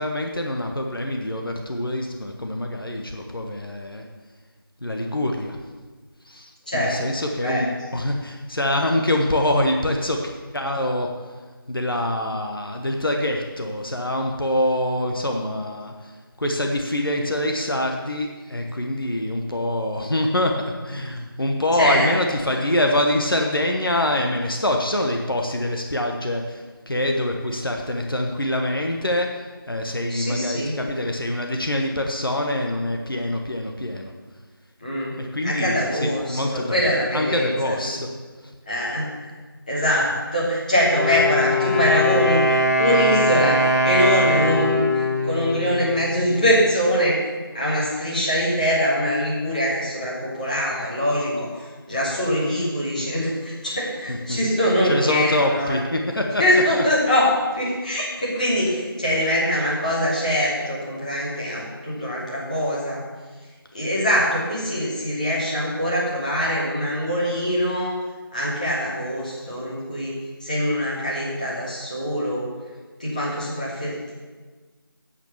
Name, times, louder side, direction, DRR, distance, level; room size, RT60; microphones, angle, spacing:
voice 1, 0.0-4.0 4.8-5.6 6.2-10.2 10.5-11.3 11.7-20.5 20.8-34.1 35.2-38.1 38.4-38.5 50.7-50.8 54.1-54.4 54.9-56.8, left 1 dB, 70° left, 2 dB, 1.4 m, -25 dB
voice 2, 6.7-7.0 7.4-7.6 21.8-22.1 22.5-22.6 30.1-30.7 34.8-35.1 35.4-37.9 38.7-39.1 39.7-47.2 47.5-55.8 56.4-57.3 57.5-63.0 63.7-67.9 68.3-72.5 73.0-74.1, equal, 20° left, -7 dB, 2.6 m, -23 dB
Wind instrument woodwind instrument, 40.8-46.6, left 1 dB, 45° left, 1.9 m, -22 dB
9.6 x 8.3 x 7.0 m, 1.4 s
figure-of-eight pair, 175°, 12 cm